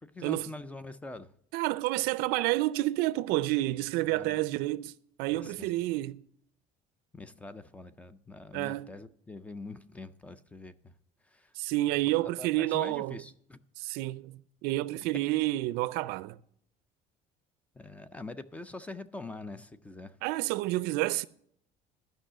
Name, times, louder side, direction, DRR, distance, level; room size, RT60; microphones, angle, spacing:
voice 1, 0.0-1.3 4.1-4.4 5.3-5.7 7.1-10.9 11.2-11.5 12.0-13.6 17.7-20.2, left 2 dB, 10° left, 0.3 m, -44 dB
voice 2, 1.5-6.2 8.5-8.9 11.6-13.2 13.8-16.4 20.2-21.3, right 18 dB, 85° right, 0.5 m, -29 dB
12.5 x 5.5 x 7.3 m
cardioid pair, 175°, 16 cm